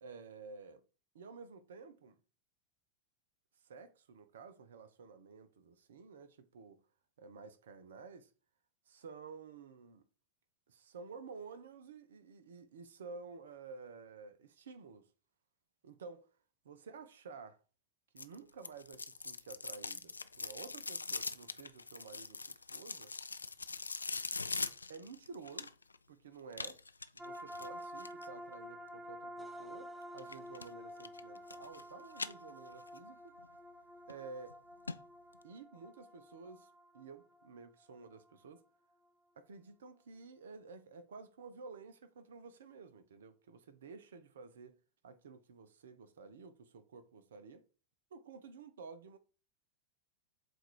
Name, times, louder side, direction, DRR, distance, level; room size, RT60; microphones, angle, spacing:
voice 1, 0.0-0.8 1.1-2.2 3.6-6.8 7.2-8.3 8.9-10.1 10.7-15.1 15.8-16.3 16.6-17.6 18.1-23.1 24.9-25.7 26.1-26.8 27.1-33.4 34.1-34.5 35.4-38.6 39.4-47.6 48.1-49.2, right 4 dB, 65° right, 0.7 m, -52 dB
sound 1, 18.2-26.0 26.5-28.3 30.2-30.7 31.0-31.8 32.1-33.0 33.4-33.5 34.1-34.2 34.5-34.6 34.9-35.0 35.3-35.4, left 4 dB, 80° left, 0.3 m, -42 dB
sound 2, 27.2-38.6, equal, 15° right, 0.6 m, -50 dB
7.7 x 2.6 x 4.6 m
figure-of-eight pair, 90°, 0 cm